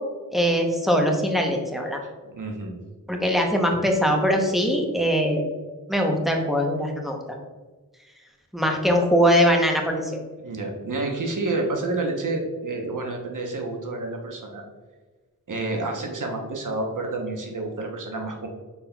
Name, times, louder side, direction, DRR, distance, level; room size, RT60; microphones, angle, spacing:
voice 1, 0.3-2.0 3.1-5.4 5.9-7.2 8.5-10.2, equal, ahead, 1 dB, 0.7 m, -21 dB
voice 2, 2.3-2.8 10.4-14.6 15.5-18.5, right 2 dB, 60° right, 2 dB, 0.9 m, -29 dB
5.7 x 4.0 x 2.3 m, 1.3 s
wide cardioid pair, 80°, 35 cm